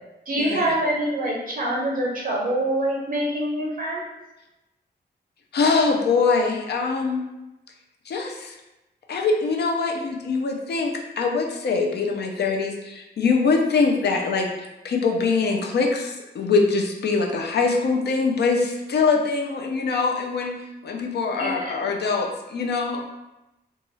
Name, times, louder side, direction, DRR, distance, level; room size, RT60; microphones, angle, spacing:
voice 1, 0.3-4.0 21.4-22.1, right 1 dB, 50° right, -3 dB, 0.5 m, -25 dB
voice 2, 5.5-7.2 8.1-8.6 9.1-14.5 14.8-20.5 20.8-23.0, left 4 dB, 70° left, 2 dB, 0.4 m, -23 dB
2.6 x 2.3 x 3.0 m, 1.0 s
wide cardioid pair, 130°, 18 cm